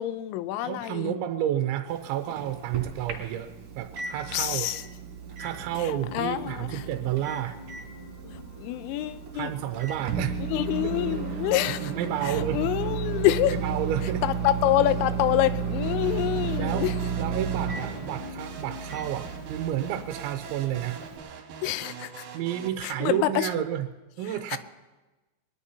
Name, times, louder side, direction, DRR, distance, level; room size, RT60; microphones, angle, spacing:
voice 1, 0.0-1.2 4.3-4.8 5.8-6.8 8.6-9.5 10.4-11.9 12.2-13.6 14.2-16.9 21.6-22.3 22.8-23.5 24.5-24.6, left 14 dB, 85° left, 13 dB, 3.0 m, -27 dB
voice 2, 0.6-4.7 5.4-7.6 9.3-11.0 11.8-12.6 13.5-14.2 16.6-16.9 17.2-21.0 22.3-23.9 24.2-24.6, right 11 dB, 85° right, 6 dB, 3.0 m, -31 dB
Microwave oven, 1.9-21.2, right 6 dB, 40° right, 3.4 m, -34 dB
sound 1, 5.5-20.2, left 4 dB, 65° left, 3.6 m, -46 dB
sound 2, 15.8-22.7, right 6 dB, 65° right, 3.1 m, -42 dB
23.5 x 19.5 x 2.8 m, 1.1 s
omnidirectional pair, 5.3 m